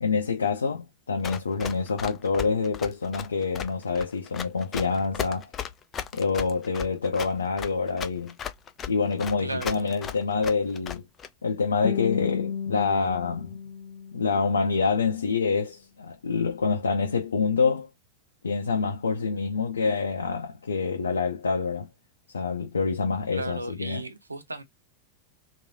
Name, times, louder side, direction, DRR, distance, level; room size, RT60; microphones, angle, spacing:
voice 1, 0.0-5.5 6.1-8.3 8.9-11.0 11.4-13.6 14.1-17.9 18.4-21.9 22.3-24.1, left 5 dB, 70° left, 0.5 m, -26 dB
Run, 1.2-11.3, left 8 dB, 25° left, 0.5 m, -36 dB
voice 2, 9.4-9.9 23.3-24.6, right 2 dB, 80° right, 0.6 m, -35 dB
Guitar, 11.8-14.9, left 7 dB, 50° left, 1.0 m, -33 dB
3.0 x 2.6 x 2.6 m
figure-of-eight pair, 90°, 0 cm